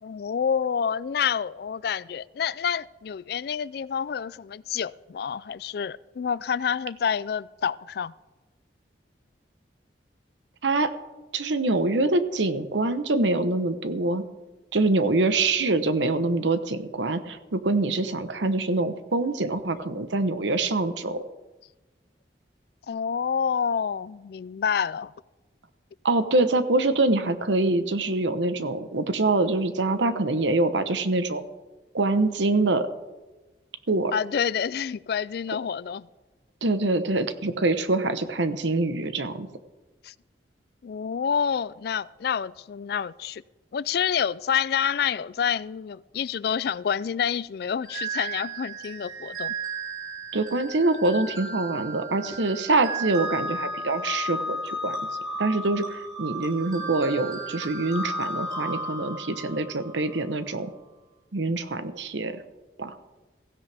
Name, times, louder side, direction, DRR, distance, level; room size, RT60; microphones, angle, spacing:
voice 1, 0.0-8.1 22.9-25.1 34.1-36.1 40.0-40.1 40.8-43.4 43.7-49.5, left 7 dB, 60° left, 0.3 m, -28 dB
voice 2, 11.3-14.2 14.7-21.3 26.0-31.4 31.9-32.9 33.9-34.1 36.6-39.5 50.3-55.0 55.4-60.7 61.3-62.4 62.8-63.0, right 2 dB, 85° right, 1.0 m, -25 dB
sound 1, 47.8-60.2, right 2 dB, 25° right, 4.3 m, -34 dB
16.5 x 16.0 x 3.5 m
head